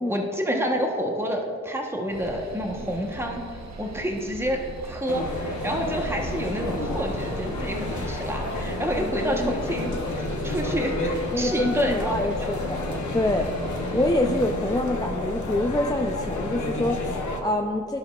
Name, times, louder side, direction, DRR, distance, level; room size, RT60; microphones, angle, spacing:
voice 1, 0.1-3.4 3.8-12.2 12.4-12.5 12.8-13.0, equal, 10° right, 1 dB, 1.0 m, -28 dB
sound 1, 2.1-14.2, right 3 dB, 65° right, 0.7 m, -39 dB
sound 2, 5.1-17.4, left 2 dB, 85° left, 0.8 m, -30 dB
voice 2, 8.9-9.5 11.3-18.0, left 1 dB, 15° left, 2 dB, 0.4 m, -26 dB
12.0 x 6.4 x 2.3 m, 2.4 s
cardioid pair, 40°, 29 cm